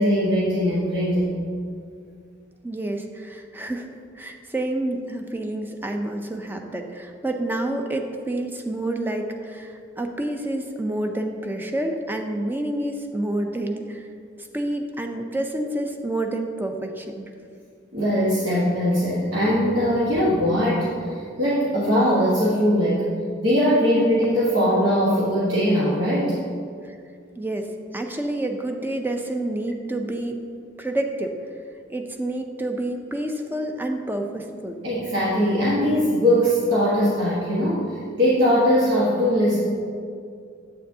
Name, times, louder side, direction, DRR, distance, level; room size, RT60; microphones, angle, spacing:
voice 1, 0.0-1.3 17.9-23.0 23.4-26.4 34.8-39.6, equal, 70° right, -8 dB, 1.3 m, -21 dB
voice 2, 2.6-3.9 4.1-14.1 14.4-17.3 26.8-27.0 27.4-27.7 27.9-30.4 30.8-31.3 31.9-34.8, right 1 dB, 10° right, 4 dB, 0.5 m, -28 dB
9.1 x 7.6 x 2.7 m, 2.3 s
head